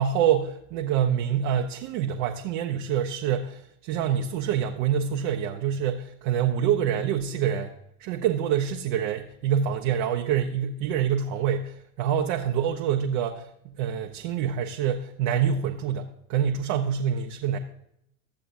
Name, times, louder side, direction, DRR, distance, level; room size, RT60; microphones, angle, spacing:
voice 1, 0.0-7.7 8.0-17.6, right 8 dB, 50° right, 3 dB, 0.7 m, -26 dB
13.0 x 7.8 x 2.6 m, 0.76 s
figure-of-eight pair, 65°, 41 cm